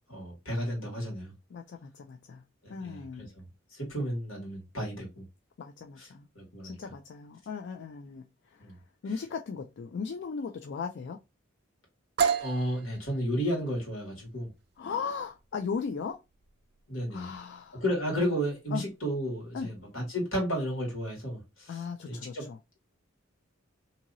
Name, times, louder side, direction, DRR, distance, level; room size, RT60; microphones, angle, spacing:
voice 1, 0.1-1.3 2.6-5.2 6.0-6.1 6.4-6.8 8.6-8.8 12.4-14.5 16.9-17.3 17.7-22.5, equal, 80° left, 1.9 m, -33 dB
voice 2, 1.5-2.4 2.7-3.3 5.6-6.3 6.6-8.8 9.0-11.2 14.8-16.2 17.1-17.8 18.7-18.8 19.5-19.7 21.7-22.6, left 5 dB, 55° left, 0.3 m, -37 dB
sound 1, 12.2-19.8, right 6 dB, 50° right, 0.3 m, -35 dB
2.9 x 2.7 x 2.5 m
head